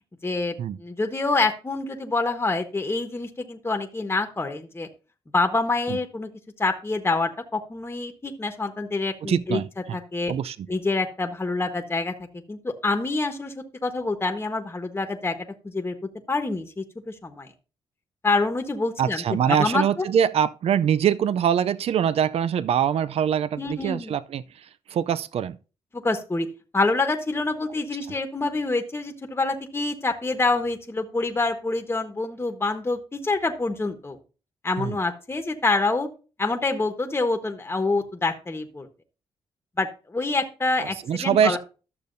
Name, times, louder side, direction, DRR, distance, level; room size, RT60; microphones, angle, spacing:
voice 1, 0.2-4.9 5.3-6.3 6.6-9.6 9.9-10.3 10.7-12.1 12.5-15.4 15.6-15.9 16.3-17.5 18.2-20.0 23.6-24.2 25.9-26.5 26.7-34.2 34.6-36.1 36.4-38.9 39.8-41.6, left 3 dB, 20° left, 1.3 m, -26 dB
voice 2, 9.2-10.0 10.3-10.6 19.0-25.6 34.8-35.0 41.1-41.6, right 8 dB, 65° right, 0.5 m, -23 dB
12.0 x 6.7 x 2.6 m
cardioid pair, 80°, 11 cm